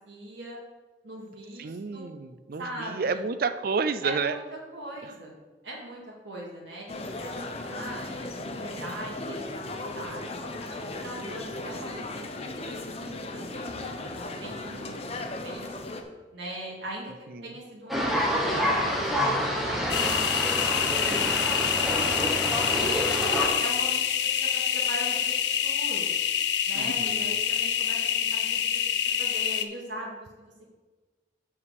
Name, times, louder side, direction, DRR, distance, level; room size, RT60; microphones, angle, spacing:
voice 1, 0.1-0.6 1.0-2.1 2.6-3.2 4.0-5.3 5.6-14.2 14.4-15.2 15.4-15.7 16.3-23.0 23.6-25.3 25.6-26.1 26.7-28.8 29.2-30.7, right 1 dB, 85° right, -4 dB, 2.0 m, -41 dB
voice 2, 1.6-4.4 14.4-14.9 17.3-17.5 26.7-27.4, right 5 dB, 55° right, 11 dB, 0.5 m, -31 dB
sound 1, 6.9-16.0, left 2 dB, 35° left, 0.8 m, -36 dB
sound 2, 17.9-23.5, equal, ahead, 1.2 m, -27 dB
sound 3, 19.9-29.6, left 9 dB, 70° left, 0.6 m, -26 dB
7.0 x 4.9 x 6.9 m, 1.3 s
head